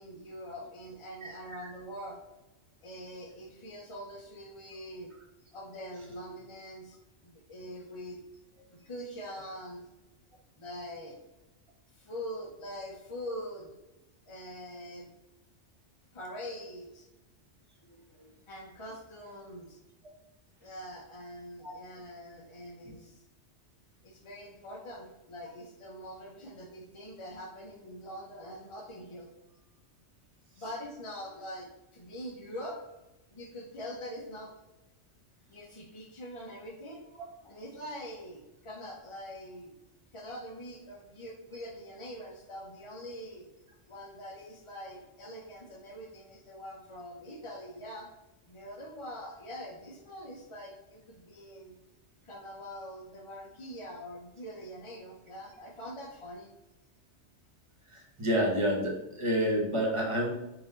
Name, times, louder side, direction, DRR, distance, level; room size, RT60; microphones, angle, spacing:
voice 1, 0.0-2.2 2.8-5.1 5.5-7.0 7.2-8.2 8.7-9.8 10.6-11.2 11.9-13.7 14.3-15.1 16.1-17.1 18.5-19.8 20.6-23.2 24.0-29.3 30.6-32.8 33.3-34.6 35.5-37.0 37.4-39.7 40.1-43.5 43.9-48.1 48.4-51.7 52.2-56.5, equal, 40° left, -2 dB, 0.5 m, -43 dB
voice 2, 1.2-1.6 18.2-18.3 21.6-21.7 57.9-60.3, equal, 30° right, -1 dB, 0.9 m, -29 dB
4.1 x 2.6 x 3.8 m, 0.99 s
omnidirectional pair, 1.2 m